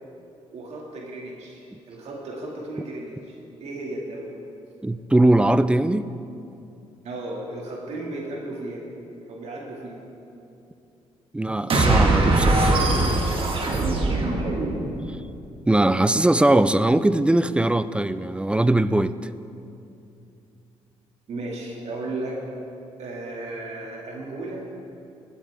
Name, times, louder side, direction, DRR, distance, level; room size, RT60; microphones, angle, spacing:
voice 1, 0.5-4.3 7.0-8.9 9.3-10.0 21.3-22.4 23.0-24.7, right 2 dB, 65° right, -2 dB, 2.2 m, -35 dB
voice 2, 4.8-6.1 11.3-12.8 15.7-19.3, right 1 dB, 10° right, 14 dB, 0.3 m, -20 dB
sound 1, 11.7-15.1, right 2 dB, 50° right, 1.7 m, -21 dB
16.5 x 8.5 x 3.5 m, 2.7 s
cardioid pair, 75°, 12 cm